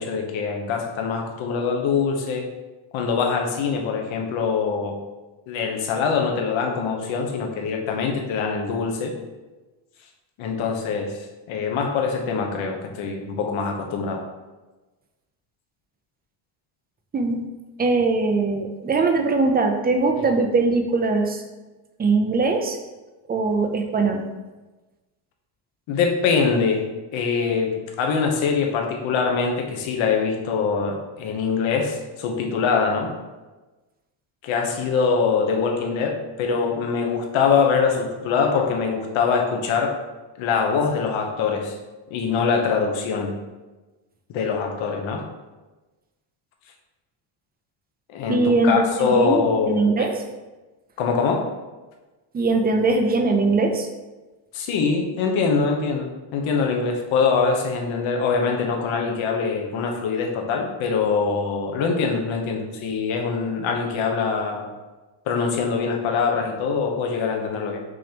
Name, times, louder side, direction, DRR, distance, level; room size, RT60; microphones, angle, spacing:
voice 1, 0.0-2.4 2.9-5.0 5.5-9.1 10.4-11.2 11.5-14.2 25.9-26.9 27.1-33.1 34.4-40.0 40.4-41.8 42.1-43.4 44.3-45.2 48.1-50.1 51.0-51.5 54.5-64.7 65.3-67.8, left 5 dB, 70° left, 2 dB, 1.1 m, -23 dB
voice 2, 17.8-21.4 22.0-22.8 23.3-24.2 48.3-50.1 52.3-53.9, right 3 dB, 20° right, 4 dB, 0.4 m, -21 dB
6.1 x 3.0 x 5.1 m, 1.2 s
cardioid pair, 155°, 49 cm